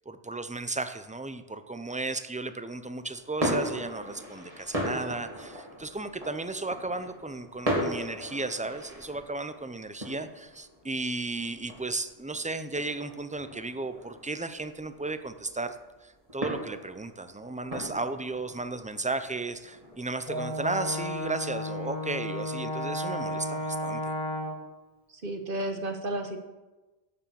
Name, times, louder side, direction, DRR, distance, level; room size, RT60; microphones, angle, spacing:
voice 1, 0.1-15.8 16.0-24.1, right 3 dB, 10° right, 10 dB, 0.4 m, -34 dB
sound 1, 3.0-22.0, equal, 35° right, 2.3 m, -38 dB
Brass instrument, 20.3-24.7, left 1 dB, 35° left, 1.5 m, -33 dB
voice 2, 25.1-26.4, right 1 dB, 60° right, 5 dB, 1.4 m, -32 dB
11.5 x 7.2 x 7.0 m, 1.1 s
omnidirectional pair, 1.0 m